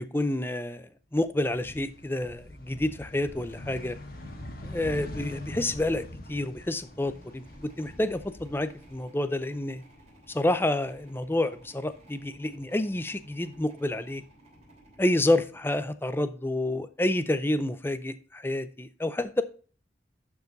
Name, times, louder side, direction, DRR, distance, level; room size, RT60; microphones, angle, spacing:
voice 1, 0.0-4.0 4.6-9.8 10.3-14.2 15.0-19.4, left 1 dB, 10° left, 0.5 m, -29 dB
sound 1, 1.2-9.4 9.7-10.9, left 1 dB, 55° left, 1.6 m, -43 dB
sound 2, 6.7-16.1, right 1 dB, 40° right, 3.0 m, -56 dB
12.0 x 4.8 x 4.0 m
head